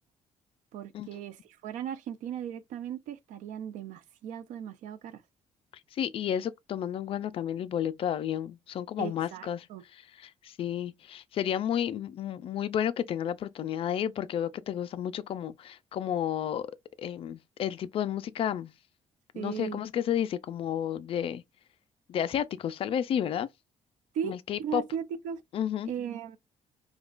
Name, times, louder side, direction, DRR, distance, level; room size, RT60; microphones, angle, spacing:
voice 1, 0.7-1.4 1.6-5.2 9.0-9.8 19.4-19.8 24.1-25.4 25.9-26.4, right 8 dB, 85° right, 0.5 m, -37 dB
voice 2, 5.9-9.7 9.9-16.7 17.0-18.7 19.3-21.4 22.1-23.5 24.2-24.8 25.5-25.9, left 9 dB, 50° left, 0.3 m, -31 dB
5.0 x 2.2 x 2.4 m
cardioid pair, 150°, 13 cm